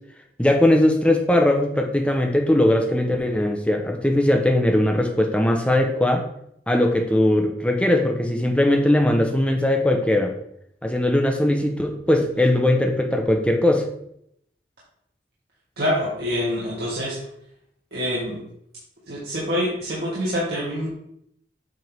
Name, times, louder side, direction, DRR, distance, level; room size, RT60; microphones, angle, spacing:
voice 1, 0.4-6.2 6.7-10.3 10.8-13.8, left 1 dB, 5° left, 2 dB, 0.9 m, -20 dB
voice 2, 15.8-17.2 17.9-18.4 19.1-20.9, equal, 65° right, -7 dB, 1.9 m, -26 dB
8.0 x 3.6 x 4.7 m, 0.73 s
head